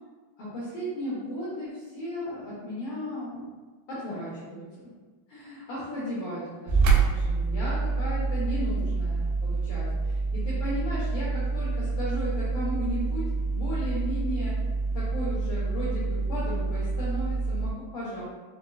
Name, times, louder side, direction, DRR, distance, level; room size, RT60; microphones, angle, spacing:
voice 1, 0.4-3.5 3.9-4.6 5.3-14.5 14.9-18.2, equal, 85° left, -9 dB, 1.7 m, -35 dB
sound 1, 6.7-17.7, right 4 dB, 85° right, 2.8 m, -27 dB
6.6 x 2.3 x 2.4 m, 1.3 s
omnidirectional pair, 5.1 m